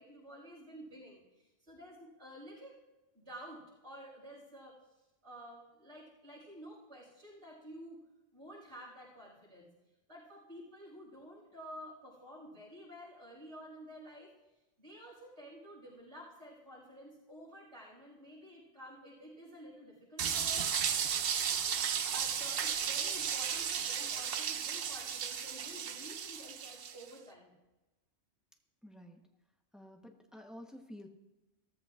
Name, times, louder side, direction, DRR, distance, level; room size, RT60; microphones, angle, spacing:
voice 1, 0.0-2.8 3.1-4.8 5.2-8.0 8.3-9.7 10.1-14.3 14.8-20.7 22.1-27.5, equal, 85° right, -9 dB, 5.5 m, -51 dB
sound 1, 20.2-27.0, right 7 dB, 60° right, 0.8 m, -34 dB
voice 2, 28.8-29.2 29.7-31.1, equal, ahead, 2 dB, 1.0 m, -50 dB
16.5 x 14.0 x 2.5 m, 1.0 s
omnidirectional pair, 1.2 m